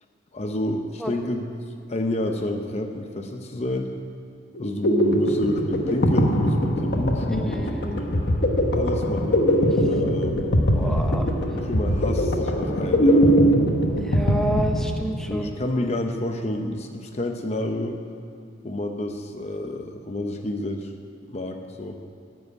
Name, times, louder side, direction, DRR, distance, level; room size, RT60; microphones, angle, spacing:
voice 1, 0.3-1.5 1.9-3.9 4.6-8.2 8.7-9.4 9.8-10.7 11.5-13.3 15.3-18.0 18.6-20.9 21.3-22.0, left 1 dB, 35° left, 4 dB, 0.8 m, -29 dB
sound 1, 4.5-15.3, equal, 60° left, 1.2 m, -21 dB
voice 2, 7.3-8.1 10.7-11.3 14.0-15.5, equal, 5° left, 2 dB, 0.9 m, -30 dB
14.0 x 7.9 x 9.4 m, 2.4 s
head